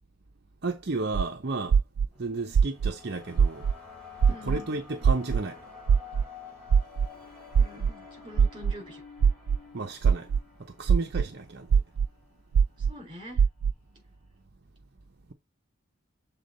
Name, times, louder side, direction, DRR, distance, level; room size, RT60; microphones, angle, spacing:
voice 1, 0.6-1.8 2.2-3.7 4.5-5.6 9.7-10.3 10.6-11.8, right 3 dB, 50° right, 0.7 m, -33 dB
sound 1, 1.1-1.2 1.7-2.1 2.5-2.9 3.4-3.7 4.2-4.6 5.0-5.4 5.9-6.2 6.7-7.1 7.5-7.9 8.4-8.7 9.2-9.6 10.0-10.4 10.9-11.2 11.7-12.1 12.5-12.9 13.4-13.7, right 6 dB, 85° right, 0.3 m, -21 dB
sound 2, 2.1-12.4, left 5 dB, 5° left, 4.1 m, -49 dB
voice 2, 4.3-4.7 7.6-9.0 12.8-13.4, left 1 dB, 25° right, 4.6 m, -44 dB
7.0 x 3.8 x 3.9 m
head